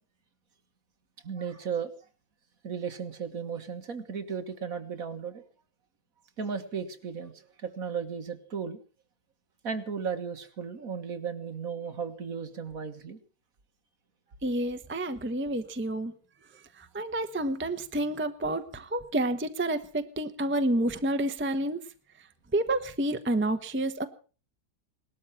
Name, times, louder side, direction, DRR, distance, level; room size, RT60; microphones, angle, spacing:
voice 1, 1.2-1.9 2.6-5.4 6.4-8.8 9.6-13.2, right 6 dB, 55° right, 8 dB, 2.0 m, -35 dB
voice 2, 14.4-16.1 16.8-21.8 22.5-24.0, right 1 dB, 10° right, 9 dB, 0.8 m, -29 dB
19.0 x 13.0 x 5.8 m, 0.38 s
omnidirectional pair, 1.8 m